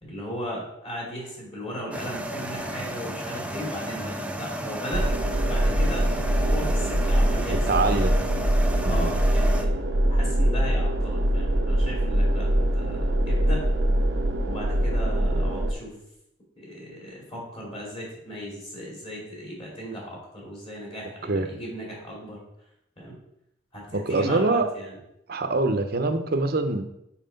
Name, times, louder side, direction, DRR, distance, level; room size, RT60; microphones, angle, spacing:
voice 1, 0.0-5.1 5.5-6.1 6.4-8.1 8.8-9.7 10.1-13.6 14.5-15.9 16.6-22.4 23.0-23.2 23.7-25.0, equal, 30° left, -4 dB, 2.6 m, -36 dB
sound 1, 1.9-9.6, equal, 5° right, 0.4 m, -33 dB
sound 2, 4.9-15.7, right 1 dB, 90° right, 0.7 m, -23 dB
voice 2, 7.5-8.2 8.8-9.1 21.3-21.5 23.9-24.6 25.3-26.8, right 3 dB, 55° right, 7 dB, 0.7 m, -24 dB
5.6 x 4.8 x 5.1 m, 0.81 s
head